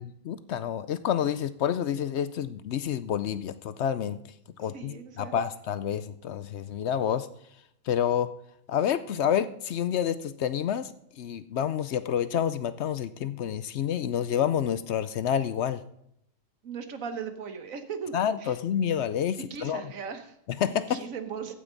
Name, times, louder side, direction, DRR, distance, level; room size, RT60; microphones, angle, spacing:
voice 1, 0.2-4.2 4.6-7.3 7.9-8.3 8.7-10.9 11.2-15.8 18.1-19.8 20.5-21.0, left 9 dB, 65° left, 14 dB, 0.8 m, -28 dB
voice 2, 4.6-5.3 16.6-18.1 18.4-18.5 19.5-20.3 20.9-21.5, right 6 dB, 85° right, 8 dB, 1.6 m, -37 dB
14.5 x 9.2 x 3.9 m, 0.76 s
omnidirectional pair, 1.4 m